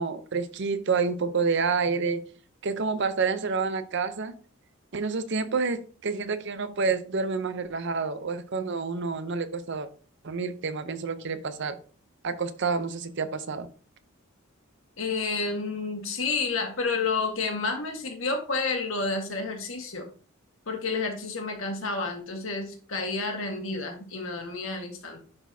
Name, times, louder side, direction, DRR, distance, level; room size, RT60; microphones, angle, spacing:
voice 1, 0.0-2.2 2.6-4.3 4.9-9.9 10.2-11.8 12.2-13.7, right 4 dB, 60° right, 0.6 m, -28 dB
voice 2, 15.0-20.1 20.7-25.3, left 4 dB, 70° left, 1.6 m, -30 dB
10.5 x 4.0 x 2.7 m
head